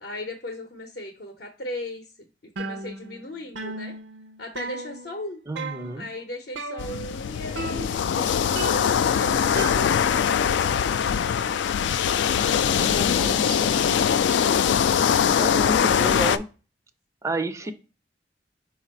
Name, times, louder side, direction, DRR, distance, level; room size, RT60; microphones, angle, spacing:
voice 1, 0.0-2.1 2.6-3.9 4.4-5.4 5.9-11.2 17.6-17.7, left 1 dB, 60° left, 4 dB, 0.7 m, -38 dB
sound 1, 2.6-3.3 3.6-5.2 5.6-6.1 6.6-7.2 7.6-8.2 8.6-10.3, right 2 dB, 80° right, 0.6 m, -35 dB
voice 2, 5.5-6.0 12.7-13.8 15.4-16.4 17.2-17.7, right 2 dB, 15° right, 9 dB, 0.4 m, -31 dB
sound 2, 6.8-16.4, left 8 dB, 80° left, 0.3 m, -22 dB
5.1 x 2.4 x 4.2 m, 0.34 s
head